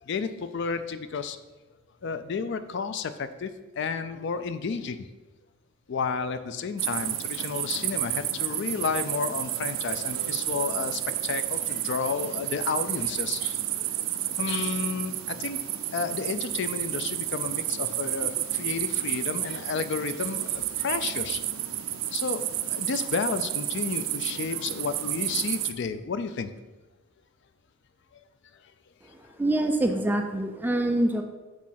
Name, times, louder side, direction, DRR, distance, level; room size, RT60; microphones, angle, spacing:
voice 1, 0.0-1.4 2.0-3.5 3.8-5.1 5.9-13.9 14.4-15.6 15.9-21.4 22.1-26.5, left 5 dB, 60° left, 11 dB, 0.4 m, -31 dB
sound 1, 6.8-25.7, right 13 dB, 80° right, 0.5 m, -31 dB
voice 2, 29.4-31.2, right 1 dB, 10° right, 5 dB, 0.3 m, -25 dB
6.3 x 3.6 x 5.7 m, 1.2 s
head